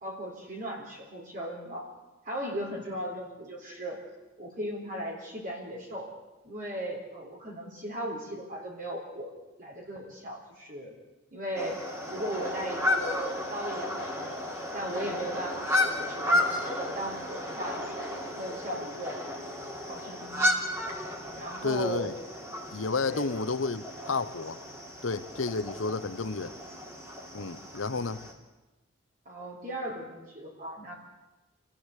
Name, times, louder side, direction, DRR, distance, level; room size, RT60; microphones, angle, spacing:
voice 1, 0.0-1.9 2.2-4.0 4.4-6.1 6.4-9.3 9.6-10.9 11.3-11.8 12.1-18.1 18.4-19.2 19.9-20.7 21.4-22.1 23.1-23.3 29.3-30.9, equal, 45° right, 4.2 m, -37 dB
sound 1, 11.6-28.3, left 1 dB, 15° right, 3.2 m, -33 dB
voice 2, 21.6-22.1 22.7-24.6 25.0-26.5 27.3-28.2, left 4 dB, 80° left, 1.0 m, -31 dB
26.5 x 15.5 x 8.3 m
head